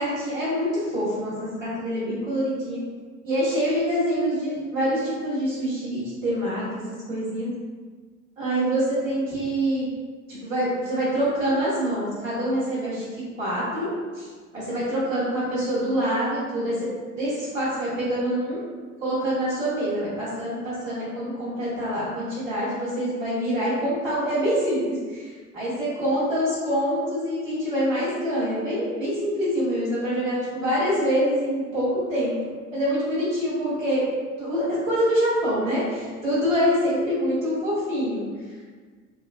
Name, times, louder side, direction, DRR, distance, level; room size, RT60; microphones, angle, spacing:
voice 1, 0.0-1.3 1.6-2.8 3.2-6.8 7.1-7.5 8.4-9.9 10.3-13.0 13.4-14.2 14.5-16.9 17.2-18.6 19.0-25.3 25.5-32.4 32.7-34.0 34.4-38.2, equal, 90° right, -11 dB, 1.3 m, -25 dB
3.6 x 2.1 x 2.4 m, 1.5 s
hypercardioid pair, 60°, 38 cm